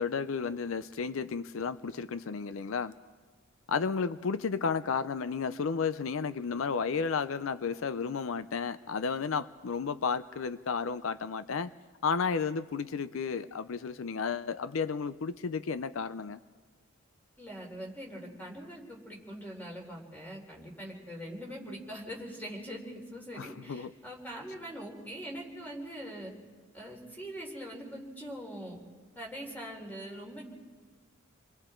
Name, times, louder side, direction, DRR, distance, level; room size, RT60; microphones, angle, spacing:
voice 1, 0.0-2.9 3.7-11.7 12.0-16.4 23.3-23.9, left 5 dB, 80° left, 14 dB, 0.5 m, -32 dB
voice 2, 17.4-26.3 26.7-28.8 29.2-30.4, equal, 10° left, -1 dB, 3.9 m, -42 dB
29.5 x 22.5 x 4.5 m, 1.4 s
head